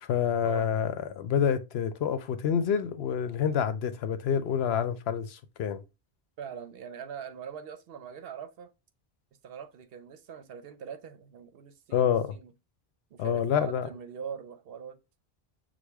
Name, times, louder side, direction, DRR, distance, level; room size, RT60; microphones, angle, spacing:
voice 1, 0.0-5.8 11.9-12.3 13.2-13.9, left 8 dB, 90° left, 0.9 m, -27 dB
voice 2, 6.4-8.7 9.4-12.5 13.1-15.0, right 7 dB, 70° right, 0.8 m, -42 dB
6.2 x 2.2 x 3.4 m
omnidirectional pair, 1.0 m